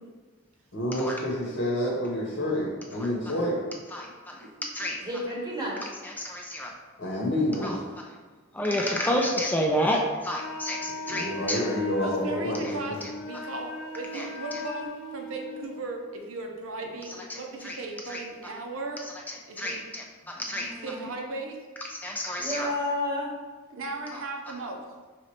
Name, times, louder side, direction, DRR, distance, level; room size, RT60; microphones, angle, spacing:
voice 1, 0.7-3.6 7.0-7.8 11.1-12.7, left 1 dB, 65° left, -5 dB, 0.9 m, -28 dB
voice 2, 4.4-5.4 6.0-6.7 7.6-7.8 8.1-8.2 8.5-11.7 12.6-13.1 13.4-13.5 14.1-14.7 17.0-18.2 19.0-20.9 21.8-22.7 24.1-24.3, equal, 10° left, 0 dB, 0.3 m, -31 dB
voice 3, 5.0-5.8 8.7-8.8 20.3-21.0 22.4-23.3, left 1 dB, 20° right, -3 dB, 0.9 m, -32 dB
Wind instrument woodwind instrument, 10.3-15.9, left 2 dB, 85° left, 0.5 m, -38 dB
voice 4, 12.0-19.0 19.5-19.8 20.8-21.6 23.7-24.8, right 2 dB, 80° right, 3 dB, 0.6 m, -37 dB
5.1 x 3.1 x 2.8 m, 1.4 s
head